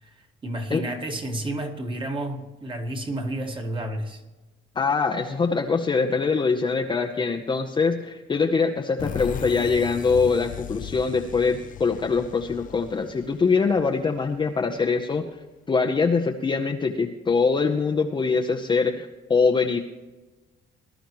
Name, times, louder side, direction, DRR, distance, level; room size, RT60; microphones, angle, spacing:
voice 1, 0.0-4.2, right 1 dB, 25° right, 4 dB, 1.7 m, -31 dB
voice 2, 4.7-15.3 15.7-19.8, left 4 dB, 25° left, 2 dB, 0.8 m, -23 dB
sound 1, 9.0-14.5, left 9 dB, 40° left, 0.4 m, -37 dB
20.0 x 12.0 x 3.1 m, 1.2 s
cardioid pair, 150°, 21 cm